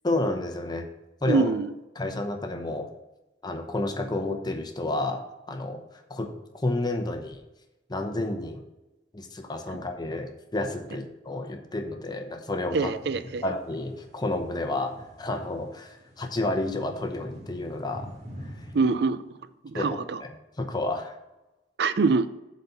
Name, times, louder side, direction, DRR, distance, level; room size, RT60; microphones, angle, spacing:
voice 1, 0.0-0.9 1.2-1.5 1.9-2.9 3.4-5.2 5.5-5.8 6.1-7.4 7.9-8.6 9.1-12.9 13.4-18.1 19.7-20.3 20.6-21.2, left 2 dB, 25° left, 5 dB, 0.8 m, -30 dB
voice 2, 1.3-1.7 12.7-13.4 18.7-19.2 19.6-20.2 21.8-22.3, right 4 dB, 65° right, 14 dB, 0.5 m, -24 dB
sound 1, 12.8-19.0, equal, 40° right, 1.8 m, -45 dB
8.1 x 4.1 x 6.9 m, 0.99 s
head